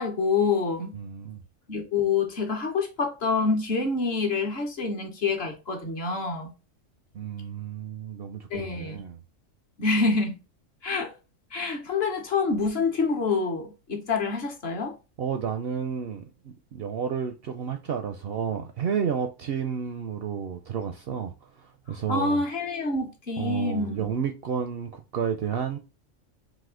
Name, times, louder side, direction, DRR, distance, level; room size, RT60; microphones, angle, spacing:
voice 1, 0.0-0.9 1.7-6.5 8.5-9.0 9.8-10.3 10.8-11.1 11.5-15.0 22.1-24.1, left 4 dB, 55° left, 1.1 m, -27 dB
voice 2, 0.9-1.4 7.1-9.2 15.2-22.4 23.4-25.8, right 7 dB, 65° right, 0.6 m, -31 dB
4.1 x 2.6 x 3.7 m
omnidirectional pair, 1.4 m